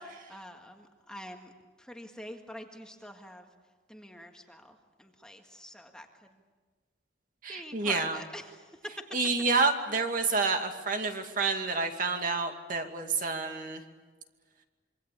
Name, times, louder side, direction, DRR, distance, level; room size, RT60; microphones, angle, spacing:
voice 1, 0.3-1.5 1.8-3.5 3.9-6.1 7.5-8.9, equal, 5° left, 3 dB, 1.9 m, -46 dB
voice 2, 7.4-8.2 9.1-13.8, right 4 dB, 50° right, 4 dB, 2.4 m, -29 dB
26.5 x 24.5 x 8.6 m, 1.4 s
head